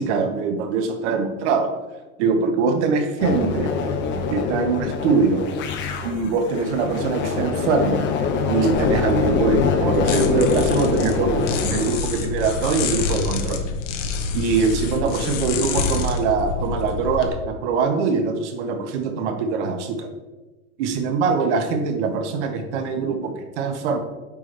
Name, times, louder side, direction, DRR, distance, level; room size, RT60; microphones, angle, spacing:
voice 1, 0.0-1.7 2.2-3.7 4.3-5.4 6.0-8.1 8.5-13.6 14.3-20.1 20.8-24.0, right 5 dB, 55° right, 6 dB, 1.3 m, -23 dB
sound 1, 3.2-11.9, left 5 dB, 25° left, 0.8 m, -24 dB
sound 2, 8.7-17.3, left 5 dB, 60° left, 1.1 m, -27 dB
8.6 x 4.9 x 3.3 m, 1.2 s
hypercardioid pair, 125°, 42 cm